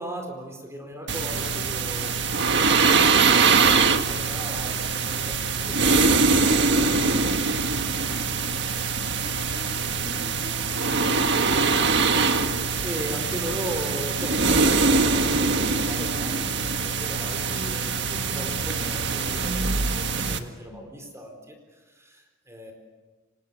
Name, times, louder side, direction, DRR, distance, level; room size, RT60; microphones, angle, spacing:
voice 1, 0.0-7.9 12.8-22.7, equal, 15° right, 3 dB, 4.4 m, -38 dB
sound 1, 1.1-20.4, right 4 dB, 60° right, 1.7 m, -23 dB
voice 2, 9.0-12.3 19.6-20.0 20.7-20.9, left 1 dB, 65° left, 3 dB, 6.9 m, -42 dB
30.0 x 25.5 x 7.0 m, 1.3 s
head